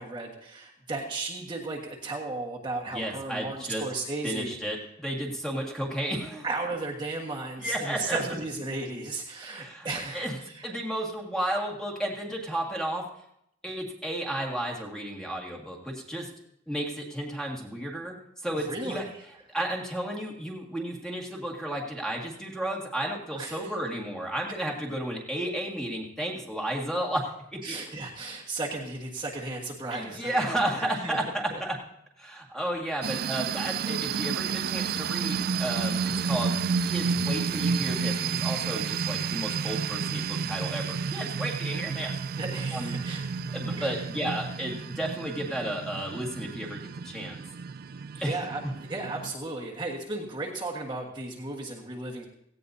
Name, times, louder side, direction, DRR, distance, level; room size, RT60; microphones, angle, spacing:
voice 1, 0.0-4.6 6.4-10.7 18.5-19.1 23.4-23.7 27.6-31.2 31.5-31.6 42.4-43.2 43.8-44.0 48.1-52.2, right 2 dB, 25° right, -3 dB, 1.5 m, -35 dB
voice 2, 2.9-3.8 4.2-6.4 7.6-8.2 9.5-9.9 10.1-10.3 10.6-13.1 13.6-16.3 16.7-18.2 18.4-19.0 19.5-27.8 29.9-31.8 32.2-36.6 36.8-42.2 42.7-43.0 43.5-47.4 48.2-48.4, right 1 dB, 5° left, -1 dB, 1.9 m, -32 dB
sound 1, 33.0-49.3, right 6 dB, 50° right, 0.4 m, -31 dB
17.5 x 16.0 x 2.7 m, 0.74 s
head